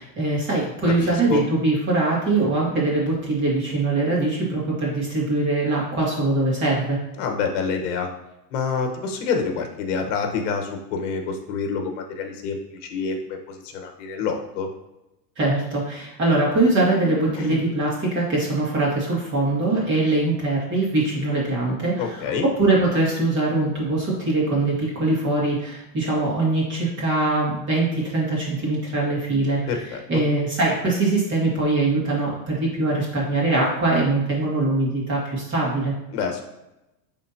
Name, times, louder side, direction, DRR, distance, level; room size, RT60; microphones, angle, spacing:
voice 1, 0.0-7.0 15.4-29.7 30.1-35.9, right 2 dB, 25° right, -5 dB, 2.4 m, -22 dB
voice 2, 1.0-1.4 7.2-8.1 8.5-14.7 17.4-17.6 22.0-22.5 29.7-30.2 36.1-36.4, left 5 dB, 45° left, 4 dB, 1.3 m, -27 dB
10.0 x 3.7 x 2.9 m, 0.91 s
supercardioid pair, 155°, 48 cm